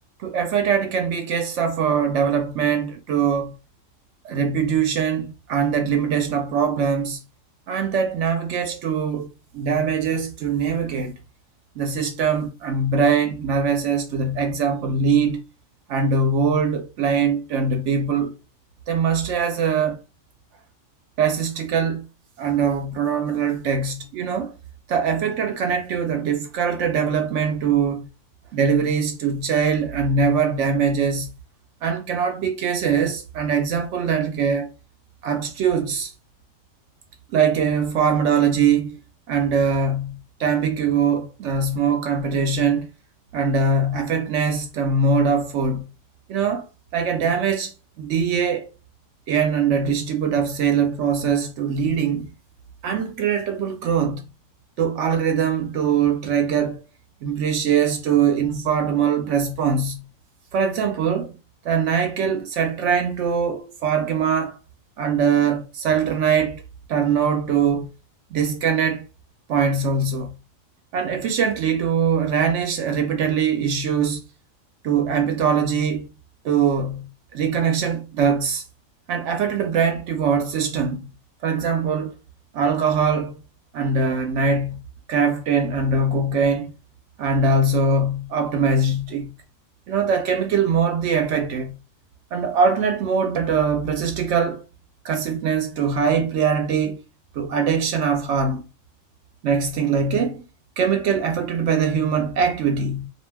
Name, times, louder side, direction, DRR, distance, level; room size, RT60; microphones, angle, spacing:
voice 1, 0.2-3.5 4.2-7.2 7.7-11.1 11.8-15.4 15.9-18.3 18.9-20.0 21.2-22.1 22.4-24.5 24.9-28.1 28.5-31.3 31.8-34.7 35.2-36.1 37.3-39.0 39.3-42.9 43.3-45.9 46.3-46.7 46.9-47.7 48.0-48.7 49.3-52.3 52.8-54.2 54.8-56.8 57.2-60.0 60.5-61.4 61.6-64.6 65.0-66.6 66.9-67.9 68.3-69.0 69.5-70.3 70.9-74.2 74.8-76.1 76.4-78.6 79.1-81.1 81.4-82.1 82.5-83.4 83.7-84.8 85.1-86.7 87.2-89.3 89.9-91.7 92.3-94.6 95.0-97.0 97.4-98.7 99.4-100.4 100.8-103.1, right 6 dB, 70° right, 0.9 m, -22 dB
2.4 x 2.2 x 3.2 m
omnidirectional pair, 1.3 m